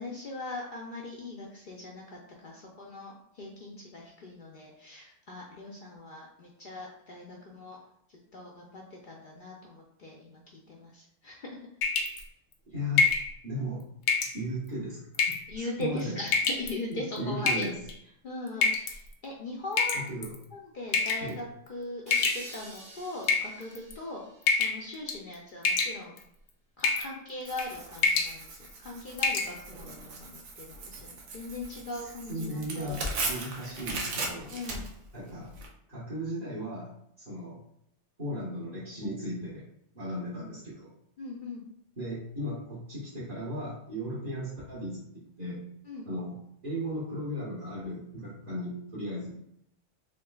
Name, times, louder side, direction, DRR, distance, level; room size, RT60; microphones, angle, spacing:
voice 1, 0.0-7.8 8.1-11.7 15.5-17.7 18.2-20.0 20.5-26.2 26.8-33.2 34.5-34.9 40.3-40.5 41.2-41.6 45.9-46.1, left 2 dB, 55° left, -2 dB, 0.6 m, -40 dB
sound 1, 11.8-12.2 13.0-13.3 14.1-14.4 15.1-15.5 16.3-16.7 17.5-17.9 18.6-18.9 19.8-20.4 20.9-21.3 22.1-22.8 23.2-23.9 24.5-24.8 25.1-25.3 25.6-26.2 26.8-27.1 27.5-27.7 28.0-28.3 28.7-28.8 29.2-29.5, left 4 dB, 75° left, 0.9 m, -26 dB
voice 2, 12.7-13.1 13.4-13.8 14.3-16.2 16.9-17.8 20.1-20.3 21.2-21.4 32.3-34.5 35.1-35.5 35.9-36.9 37.3-37.6 38.2-39.6 39.9-40.9 42.0-45.6 46.1-46.4 46.6-49.4, equal, 35° right, -10 dB, 1.3 m, -36 dB
sound 2, 22.1-25.5, right 1 dB, 20° right, 0.9 m, -48 dB
Tearing, 27.5-35.7, right 3 dB, 90° right, 1.1 m, -38 dB
3.6 x 3.6 x 2.3 m, 0.74 s
omnidirectional pair, 1.2 m